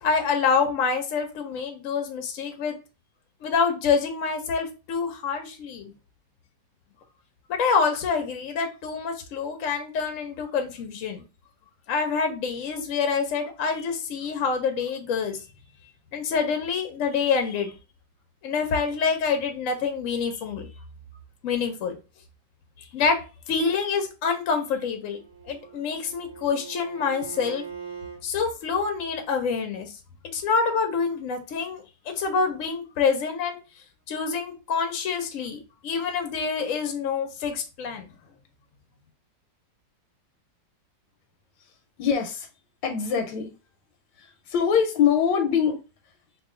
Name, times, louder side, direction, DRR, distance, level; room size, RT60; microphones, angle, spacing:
voice 1, 0.0-2.8 3.4-5.9 7.5-11.2 11.9-15.4 16.1-17.7 18.4-20.7 21.4-22.0 22.9-23.2 23.5-25.2 25.4-27.6 28.2-29.9 30.3-33.6 34.1-38.1, left 5 dB, 65° left, 5 dB, 0.8 m, -26 dB
Bowed string instrument, 25.1-28.2, right 6 dB, 50° right, 1.0 m, -41 dB
voice 2, 42.0-42.5 42.8-43.5 44.2-45.8, left 7 dB, 85° left, 5 dB, 1.3 m, -23 dB
3.0 x 2.4 x 3.6 m, 0.31 s
omnidirectional pair, 2.0 m